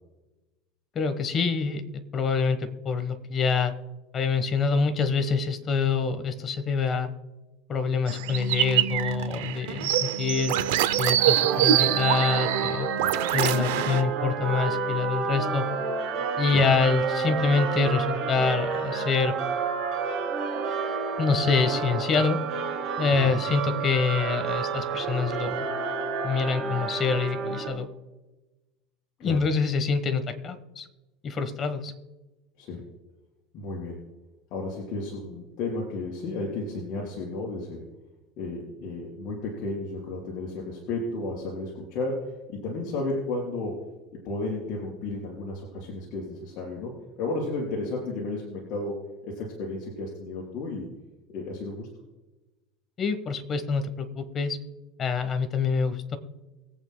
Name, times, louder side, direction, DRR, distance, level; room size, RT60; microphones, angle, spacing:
voice 1, 0.9-3.7 4.1-7.1 7.7-10.6 11.0-12.9 13.3-15.7 16.4-19.3 21.2-22.4 23.0-25.7 26.2-27.9 29.2-30.9 31.2-31.9 53.0-54.6 55.0-56.2, left 5 dB, 30° left, 10 dB, 1.2 m, -26 dB
sound 1, 8.1-14.0, right 12 dB, 90° right, 0.6 m, -25 dB
sound 2, 11.2-27.7, right 5 dB, 40° right, 3.9 m, -30 dB
voice 2, 33.5-34.0 34.5-37.8 38.4-43.8 44.2-50.9 51.3-51.9, left 2 dB, 50° left, -3 dB, 4.2 m, -33 dB
24.0 x 8.6 x 2.3 m, 1.1 s
supercardioid pair, 145°, 0 cm